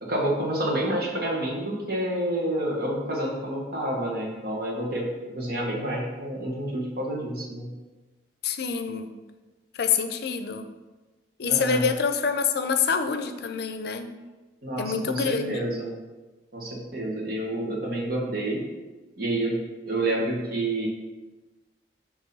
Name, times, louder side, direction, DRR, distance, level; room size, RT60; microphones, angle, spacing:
voice 1, 0.0-5.1 5.3-7.7 11.4-11.8 14.6-15.9 16.5-18.6 19.2-19.6 19.9-20.9, right 1 dB, 60° right, -2 dB, 1.4 m, -28 dB
voice 2, 8.4-9.1 9.8-10.7 11.4-14.1 14.8-15.7, left 6 dB, 65° left, 8 dB, 0.5 m, -26 dB
6.2 x 3.0 x 5.4 m, 1.2 s
head